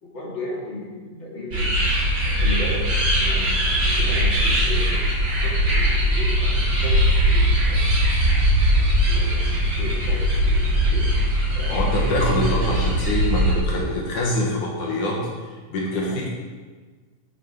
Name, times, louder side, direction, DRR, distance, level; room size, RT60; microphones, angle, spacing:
voice 1, 0.0-1.7 2.2-2.9 3.2-5.2 5.4-7.8 8.8-11.1 11.5-12.0 16.0-16.3, left 1 dB, 40° left, -3 dB, 2.8 m, -35 dB
sound 1, 1.5-13.5, equal, 45° right, 4.4 m, -20 dB
voice 2, 11.7-16.3, left 1 dB, 75° left, -2 dB, 3.0 m, -25 dB
16.5 x 7.0 x 4.9 m, 1.4 s
omnidirectional pair, 3.4 m